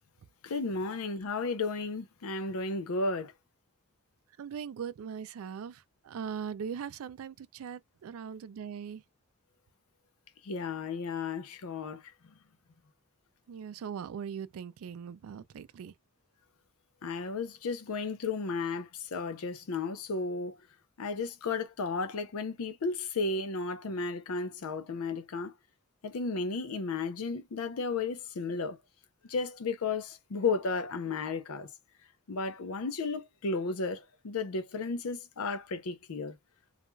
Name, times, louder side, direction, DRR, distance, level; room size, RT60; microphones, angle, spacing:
voice 1, 0.4-3.3 10.4-12.0 17.0-20.6 21.0-25.5 26.0-28.8 29.3-31.7 32.3-36.4, left 4 dB, 80° left, 0.5 m, -33 dB
voice 2, 4.4-9.0 13.5-15.9, right 7 dB, 75° right, 0.3 m, -40 dB
2.4 x 2.2 x 3.0 m
head